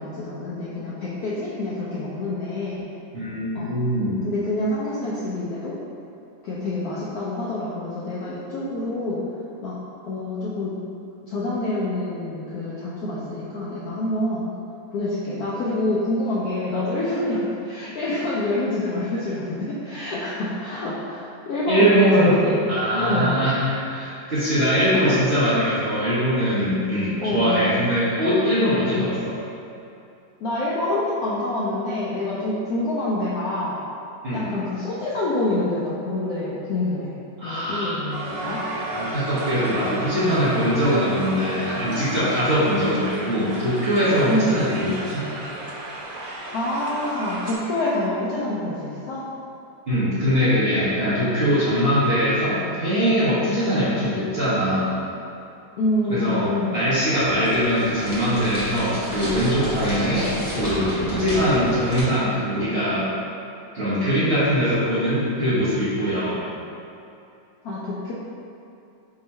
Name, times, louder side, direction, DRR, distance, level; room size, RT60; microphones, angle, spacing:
voice 1, 0.0-2.9 3.5-3.7 4.2-5.8 6.4-9.2 9.6-9.8 10.0-10.8 11.2-14.5 14.9-23.3 24.9-25.2 27.2-27.7 30.4-33.8 34.3-37.2 37.4-38.6 44.3-44.5 46.5-49.2 55.7-56.9 67.6-68.1, left 2 dB, 75° left, -7 dB, 0.8 m, -26 dB
voice 2, 3.1-4.2 21.7-22.4 22.7-29.4 34.2-34.5 37.4-37.9 38.9-45.2 49.9-54.9 56.1-63.1 63.7-66.4, equal, 45° right, -13 dB, 0.8 m, -22 dB
Crowd, 38.1-47.6, right 2 dB, 75° right, 1.3 m, -33 dB
sound 1, 56.0-62.0, equal, 40° left, 1.3 m, -31 dB
3.5 x 2.8 x 4.3 m, 2.7 s
omnidirectional pair, 2.1 m